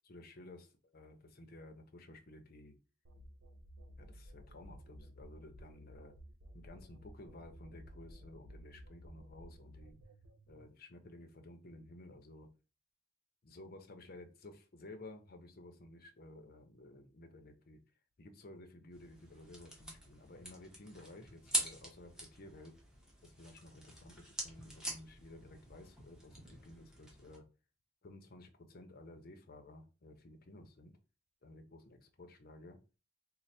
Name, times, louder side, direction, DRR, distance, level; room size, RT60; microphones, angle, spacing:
voice 1, 0.1-0.7 0.9-2.8 4.0-6.1 6.5-10.0 10.5-12.5 13.4-17.8 18.2-22.8 23.2-27.5 28.0-31.0 31.4-32.8, left 2 dB, 50° left, 5 dB, 0.6 m, -54 dB
sound 1, 3.0-10.7, equal, 75° right, 0.8 m, -55 dB
sound 2, 18.9-27.4, right 1 dB, 5° right, 0.8 m, -44 dB
3.2 x 2.1 x 4.1 m, 0.31 s
head